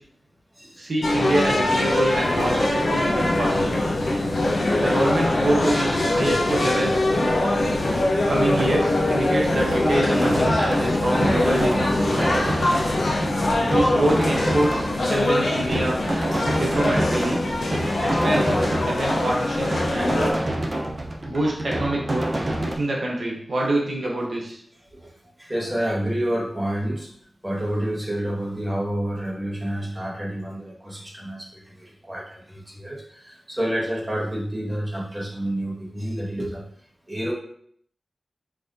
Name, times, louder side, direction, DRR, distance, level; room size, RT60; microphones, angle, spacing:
voice 1, 0.8-3.7 4.8-7.4 8.3-12.4 13.7-16.0 16.5-17.4 18.0-20.4 21.2-22.3 22.6-24.6, right 1 dB, 75° right, -2 dB, 1.1 m, -26 dB
sound 1, 1.0-20.3, left 1 dB, 85° left, 0.9 m, -22 dB
sound 2, 8.5-22.8, right 1 dB, 45° right, 0.7 m, -28 dB
voice 2, 24.9-27.1 27.4-36.6 37.1-37.3, right 1 dB, 20° right, -4 dB, 1.6 m, -29 dB
5.8 x 3.4 x 2.7 m, 0.65 s
wide cardioid pair, 55°, 0 cm